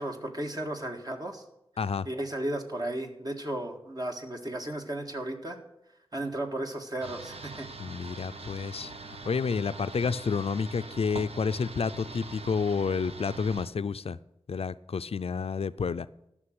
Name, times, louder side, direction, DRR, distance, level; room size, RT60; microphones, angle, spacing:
voice 1, 0.0-1.4 2.0-5.6 6.1-7.7, right 1 dB, 40° right, 3 dB, 1.8 m, -34 dB
voice 2, 1.8-2.1 7.8-8.9 9.3-14.2 14.5-16.1, left 5 dB, 80° left, 13 dB, 0.4 m, -30 dB
sound 1, 7.0-13.7, right 3 dB, 90° right, 0.9 m, -43 dB
13.0 x 6.3 x 7.8 m, 0.84 s
wide cardioid pair, 55°, 10 cm